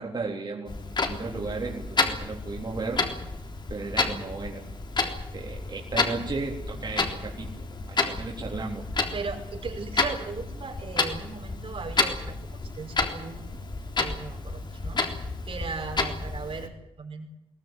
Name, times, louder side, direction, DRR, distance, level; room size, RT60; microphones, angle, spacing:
voice 1, 0.0-3.1 3.7-4.6 5.0-8.9, right 3 dB, 45° right, -1 dB, 4.0 m, -35 dB
Clock, 0.7-16.7, left 3 dB, 50° left, 3.7 m, -31 dB
voice 2, 9.1-12.4 12.8-13.6 14.0-16.7 17.0-17.3, right 4 dB, 70° right, 2 dB, 5.7 m, -37 dB
22.5 x 19.0 x 9.4 m, 0.85 s
wide cardioid pair, 110°, 10 cm